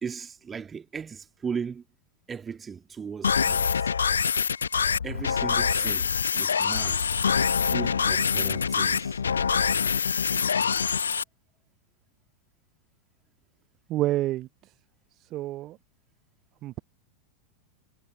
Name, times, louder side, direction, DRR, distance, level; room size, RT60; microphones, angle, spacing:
voice 1, 0.0-1.8 2.3-3.9 5.0-7.1 7.7-9.2, right 6 dB, 20° right, 2.4 m, -37 dB
sound 1, 3.2-11.2, left 6 dB, 70° left, 1.1 m, -25 dB
voice 2, 13.9-14.5 15.3-15.8 16.6-16.8, right 16 dB, 35° right, 0.6 m, -28 dB
figure-of-eight pair, 90°, 0 cm